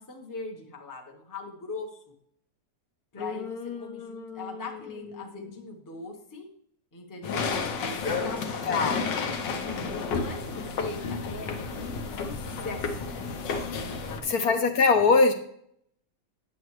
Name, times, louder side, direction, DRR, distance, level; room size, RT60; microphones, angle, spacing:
voice 1, 0.0-2.0 3.1-6.5 6.9-7.5 8.0-11.5 11.8-13.1 13.7-14.4, left 3 dB, 15° left, 2 dB, 0.8 m, -40 dB
voice 2, 3.2-4.6 4.9-5.0 5.4-5.6 8.7-9.0 14.2-15.3, left 4 dB, 65° left, 6 dB, 1.3 m, -24 dB
sound 1, 7.2-14.2, left 5 dB, 90° left, 1.6 m, -31 dB
9.7 x 7.8 x 3.2 m, 0.66 s
omnidirectional pair, 1.9 m